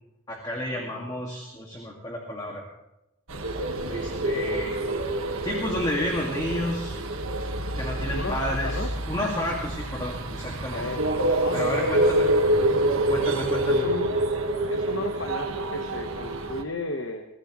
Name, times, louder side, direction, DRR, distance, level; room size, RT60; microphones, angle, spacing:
voice 1, 0.3-2.6 3.9-4.8 5.4-7.0 7.8-10.9 11.5-12.3 13.1-13.9, left 1 dB, 20° left, -1 dB, 1.9 m, -31 dB
sound 1, 3.3-16.6, right 1 dB, 85° right, 1.5 m, -27 dB
voice 2, 8.1-8.9 10.7-11.0 11.4-12.3 13.6-14.1 14.7-17.2, left 2 dB, 65° left, 5 dB, 1.2 m, -34 dB
23.0 x 15.0 x 3.1 m, 0.91 s
head